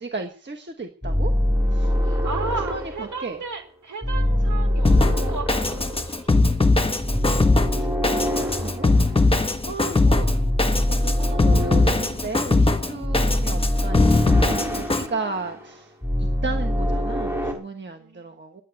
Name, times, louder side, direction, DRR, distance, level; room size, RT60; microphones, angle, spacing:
voice 1, 0.0-1.3 1.7-1.9 2.2-2.3 2.7-2.8 3.2-3.4 7.7-7.9 8.3-8.9 9.3-10.3 10.9-15.9 16.4-18.6, right 4 dB, 35° right, 1.3 m, -34 dB
sound 1, 1.0-3.5 4.0-6.5 7.0-9.4 10.0-12.3 13.0-15.8 16.0-17.5, equal, 10° right, 4.0 m, -24 dB
voice 2, 1.7-6.7 17.9-18.3, right 4 dB, 60° right, 4.6 m, -35 dB
Drum kit, 4.8-15.1, left 3 dB, 15° left, 1.4 m, -21 dB
10.0 x 9.3 x 9.4 m
wide cardioid pair, 140°, 34 cm